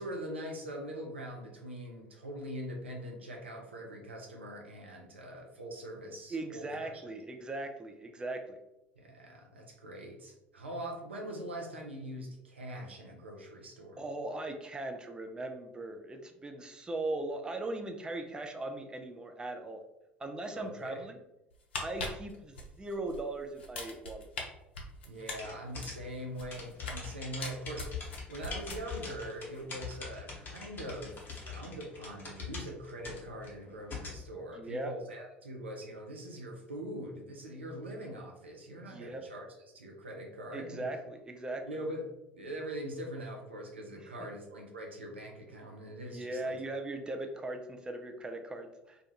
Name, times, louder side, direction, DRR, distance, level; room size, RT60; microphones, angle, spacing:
voice 1, 0.0-7.0 9.0-14.0 20.5-21.1 21.9-22.1 25.0-39.5 39.7-40.9 41.6-46.6, equal, 80° right, 1 dB, 0.4 m, -42 dB
voice 2, 6.3-8.6 14.0-19.8 20.2-21.2 21.8-24.3 34.5-34.9 38.9-39.2 40.5-41.7 44.0-44.1 46.1-49.0, right 2 dB, 15° right, 5 dB, 0.3 m, -39 dB
sound 1, 21.5-23.2 23.6-24.4 24.7-27.1 27.4-29.1 29.4-29.6, left 3 dB, 75° left, 0.4 m, -41 dB
sound 2, 25.4-34.2, left 5 dB, 35° left, 0.8 m, -43 dB
2.3 x 2.2 x 2.8 m, 0.91 s
figure-of-eight pair, 60°, 6 cm